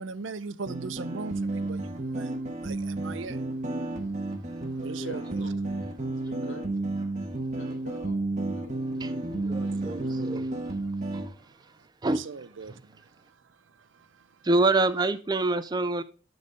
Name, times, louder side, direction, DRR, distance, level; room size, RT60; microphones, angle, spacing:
voice 1, 0.0-3.5 4.7-5.5 9.7-10.3 11.4-14.5, right 4 dB, 70° right, 0.6 m, -41 dB
sound 1, 0.7-11.3, right 2 dB, 35° right, 1.1 m, -32 dB
voice 2, 4.9-6.9 7.5-9.8 10.1-10.6, left 1 dB, 80° left, 2.0 m, -48 dB
voice 3, 9.0-10.5 12.0-12.2 14.4-16.0, right 2 dB, 20° right, 0.4 m, -26 dB
12.0 x 4.1 x 4.9 m
head